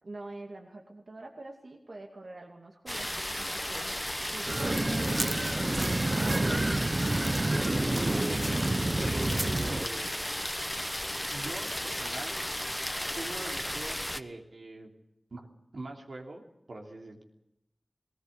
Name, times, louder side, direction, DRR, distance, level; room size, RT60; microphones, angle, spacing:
voice 1, 0.0-4.0 4.3-5.2, right 2 dB, 70° right, 2 dB, 2.4 m, -45 dB
sound 1, 2.9-14.2, equal, 10° left, 1.2 m, -34 dB
sound 2, 4.5-9.9, right 2 dB, 40° right, 0.7 m, -29 dB
voice 2, 7.5-8.6 9.0-10.1 11.3-12.4 13.1-14.9 15.3-15.5 15.7-16.4 16.7-17.2, right 2 dB, 85° right, 1 dB, 3.1 m, -42 dB
19.5 x 19.0 x 8.3 m, 0.87 s
wide cardioid pair, 60°, 0 cm